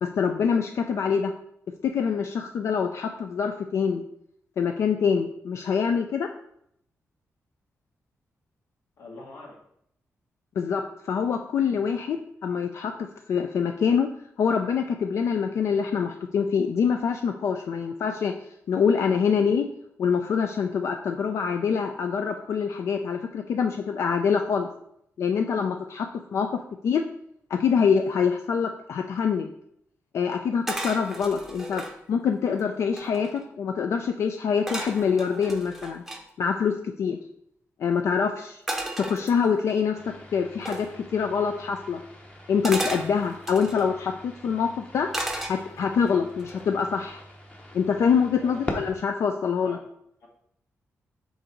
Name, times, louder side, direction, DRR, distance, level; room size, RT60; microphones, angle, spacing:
voice 1, 0.0-1.3 1.8-4.0 4.6-6.3 10.6-12.9 13.3-14.1 14.4-18.3 18.7-19.7 20.0-24.7 25.2-26.5 26.8-27.0 27.5-29.5 30.1-31.8 32.1-36.0 36.4-37.2 37.8-38.6 39.0-40.0 40.3-40.9 41.1-42.0 42.5-45.1 45.5-47.2 47.7-49.8, left 6 dB, 65° left, 5 dB, 0.4 m, -25 dB
voice 2, 9.0-9.6 48.4-48.6 49.6-49.8 50.2-50.3, left 2 dB, 85° left, -2 dB, 2.0 m, -44 dB
sound 1, 30.7-32.0 32.5-32.6 32.8-33.5 34.7-36.2 38.7-39.7 40.7-40.9 42.6-43.9 45.1-46.0 46.4-46.7, right 1 dB, 5° right, 0.7 m, -34 dB
sound 2, 39.9-48.9, left 1 dB, 25° left, 0.9 m, -42 dB
6.3 x 4.0 x 4.5 m, 0.73 s
wide cardioid pair, 165°, 5 cm